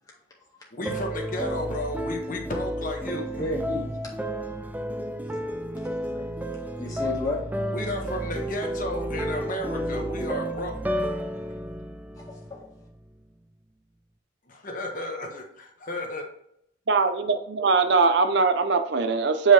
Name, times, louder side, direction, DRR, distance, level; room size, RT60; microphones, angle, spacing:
voice 1, 0.7-3.5 7.7-10.7 14.5-16.2, left 1 dB, 40° left, 2 dB, 1.3 m, -33 dB
sound 1, 0.9-13.0, equal, 10° right, 0.4 m, -32 dB
voice 2, 3.4-4.2 6.1-6.3 6.8-7.4 12.2-12.7, left 1 dB, 15° left, -3 dB, 1.9 m, -32 dB
voice 3, 16.9-19.5, right 4 dB, 55° right, 8 dB, 0.6 m, -21 dB
7.7 x 4.9 x 3.4 m, 0.72 s
head